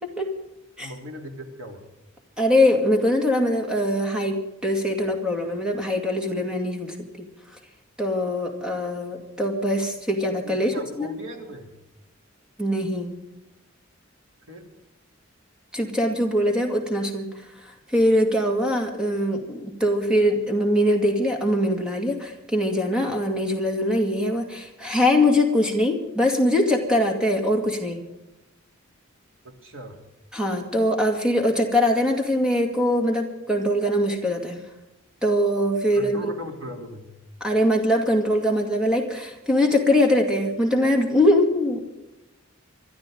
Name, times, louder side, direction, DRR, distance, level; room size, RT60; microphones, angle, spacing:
voice 1, 0.0-0.3 0.8-0.9 2.4-7.3 8.0-11.1 12.6-13.1 15.7-17.3 17.9-28.0 30.3-34.6 35.2-36.3 37.4-41.8, left 1 dB, 5° right, 2 dB, 2.2 m, -22 dB
voice 2, 0.8-1.8 10.4-11.7 14.5-14.7 29.4-30.0 35.9-37.1, equal, 90° right, 2 dB, 3.3 m, -38 dB
27.0 x 12.0 x 3.9 m, 0.96 s
head